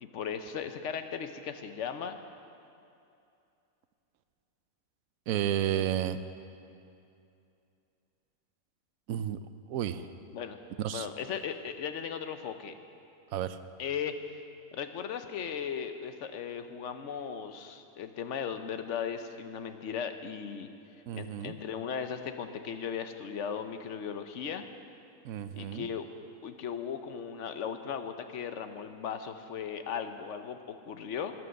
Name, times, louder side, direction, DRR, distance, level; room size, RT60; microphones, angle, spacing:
voice 1, 0.0-2.2 10.3-10.6 10.9-12.7 13.8-14.4 14.7-20.7 21.1-24.6 25.5-26.1 26.4-31.3, left 7 dB, 60° left, 8 dB, 1.1 m, -37 dB
voice 2, 5.3-6.2 9.1-9.4 9.7-10.0 10.8-11.0 13.3-13.5 21.1-21.5 25.2-25.9, right 11 dB, 75° right, 12 dB, 1.0 m, -31 dB
14.0 x 11.0 x 6.5 m, 2.6 s
omnidirectional pair, 1.5 m